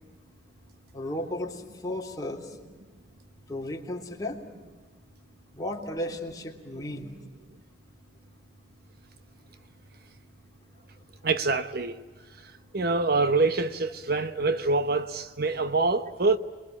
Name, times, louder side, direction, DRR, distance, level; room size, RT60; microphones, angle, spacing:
voice 1, 0.9-2.6 3.5-4.4 5.5-7.2, left 1 dB, 20° left, 3.3 m, -34 dB
voice 2, 11.2-12.0 12.7-16.4, right 3 dB, 60° right, 1.1 m, -25 dB
27.5 x 22.0 x 8.7 m
head